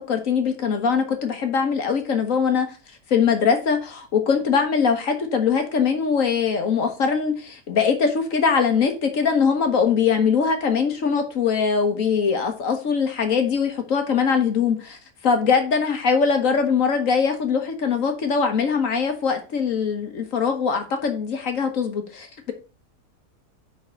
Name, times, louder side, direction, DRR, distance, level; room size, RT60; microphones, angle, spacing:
voice 1, 0.1-2.7 3.1-15.0 15.2-22.5, left 6 dB, 55° left, 1.4 m, -22 dB
5.4 x 4.8 x 6.3 m
omnidirectional pair, 1.7 m